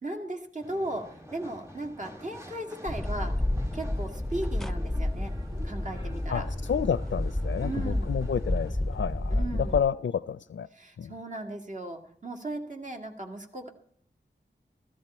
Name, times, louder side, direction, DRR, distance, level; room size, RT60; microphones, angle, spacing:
voice 1, 0.0-3.4 3.7-5.3 5.6-6.5 7.6-8.2 9.3-9.8 10.7-13.7, right 1 dB, 40° right, 2.1 m, -37 dB
sound 1, 0.6-8.7, equal, 15° right, 2.5 m, -48 dB
sound 2, 2.9-9.8, left 1 dB, ahead, 0.7 m, -30 dB
voice 2, 6.3-10.7 11.0-11.1, left 7 dB, 90° left, 0.4 m, -30 dB
15.0 x 14.5 x 4.3 m
wide cardioid pair, 80°, 19 cm